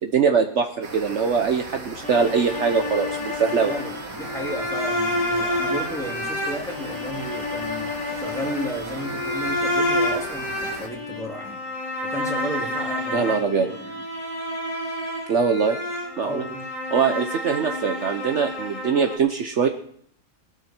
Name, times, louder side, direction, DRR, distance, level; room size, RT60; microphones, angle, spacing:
voice 1, 0.0-3.7 13.1-13.7 15.3-15.8 16.2-16.4 16.9-19.7, right 6 dB, 60° right, 5 dB, 1.2 m, -22 dB
sound 1, 0.8-10.9, right 3 dB, 75° right, 2.3 m, -38 dB
sound 2, 2.0-19.2, left 1 dB, 60° left, 3.0 m, -29 dB
voice 2, 3.6-11.6 12.0-14.0 16.2-16.7, equal, ahead, -2 dB, 2.9 m, -33 dB
19.5 x 12.5 x 4.5 m, 0.64 s
omnidirectional pair, 1.5 m